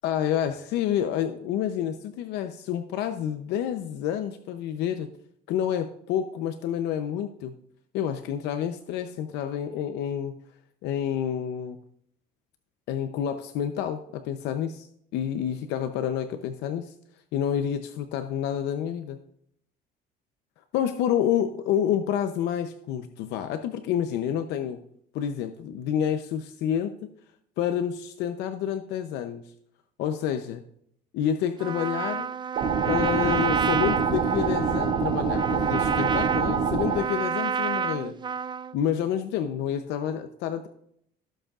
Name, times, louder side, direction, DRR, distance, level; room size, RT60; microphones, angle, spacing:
voice 1, 0.0-5.1 5.5-7.5 7.9-10.4 10.8-11.8 12.9-14.9 15.1-16.9 17.3-19.2 20.7-24.8 25.1-26.9 27.6-29.4 30.0-30.6 31.1-32.3 32.8-38.2 38.7-40.7, left 9 dB, 90° left, 8 dB, 0.8 m, -28 dB
Trumpet, 31.6-38.7, right 6 dB, 25° right, 0.4 m, -29 dB
sound 1, 32.6-37.0, right 6 dB, 85° right, 2.5 m, -26 dB
16.5 x 7.9 x 2.5 m, 0.69 s
cardioid pair, 110°, 17 cm